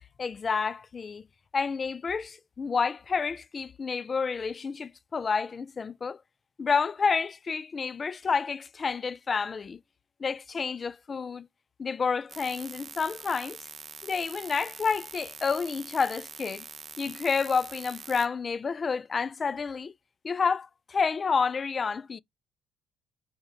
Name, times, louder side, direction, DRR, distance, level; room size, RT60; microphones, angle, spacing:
voice 1, 0.2-1.2 1.5-6.2 6.6-9.8 10.2-11.5 11.8-13.6 14.0-16.7 17.0-19.9 20.2-22.2, left 5 dB, 35° left, 0.4 m, -29 dB
sound 1, 12.3-18.3, right 4 dB, 30° right, 0.6 m, -44 dB
4.7 x 4.3 x 4.7 m
supercardioid pair, 85°, 0 cm